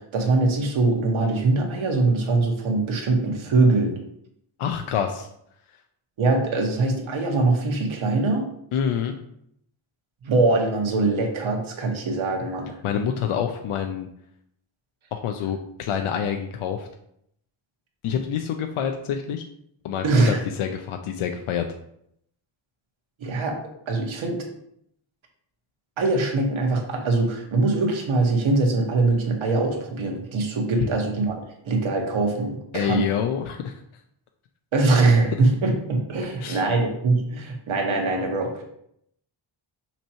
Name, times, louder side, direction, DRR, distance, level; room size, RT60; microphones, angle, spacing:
voice 1, 0.1-4.0 6.2-8.4 10.2-12.7 20.0-20.4 23.2-23.6 23.9-24.4 26.0-33.1 34.7-38.6, right 3 dB, 70° right, 1 dB, 1.5 m, -22 dB
voice 2, 4.6-5.3 8.7-9.2 12.8-14.1 15.1-16.9 18.0-19.4 19.8-21.6 30.8-30.9 32.7-33.8 36.4-36.6, left 8 dB, 85° left, 5 dB, 0.7 m, -27 dB
5.8 x 3.0 x 5.6 m, 0.72 s
wide cardioid pair, 120°, 48 cm